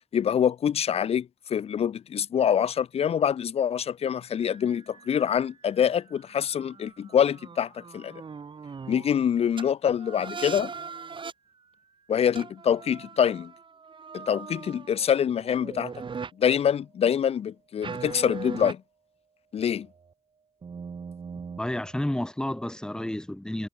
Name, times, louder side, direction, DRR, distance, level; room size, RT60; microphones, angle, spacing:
voice 1, 0.1-8.1 8.9-10.7 12.1-13.5 14.1-15.9 16.4-18.8 19.5-19.9, left 8 dB, 80° left, 0.5 m, -25 dB
sound 1, 4.4-9.2 9.6-9.7 10.0-11.3 12.4-16.3 17.8-18.7 19.6-20.1 20.6-22.1, right 5 dB, 55° right, 4.4 m, -41 dB
voice 2, 21.6-23.7, left 1 dB, 5° left, 3.0 m, -30 dB
wide cardioid pair, 150°, 10 cm